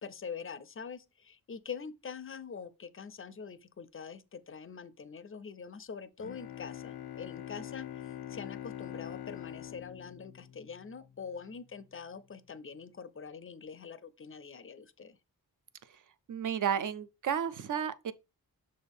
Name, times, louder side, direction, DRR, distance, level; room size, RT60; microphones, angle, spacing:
voice 1, 0.0-15.2, left 6 dB, 35° left, 0.4 m, -44 dB
Bowed string instrument, 6.2-11.1, left 11 dB, 90° left, 0.5 m, -44 dB
voice 2, 16.3-18.1, right 8 dB, 55° right, 0.5 m, -32 dB
6.4 x 4.3 x 3.5 m
wide cardioid pair, 130°, 37 cm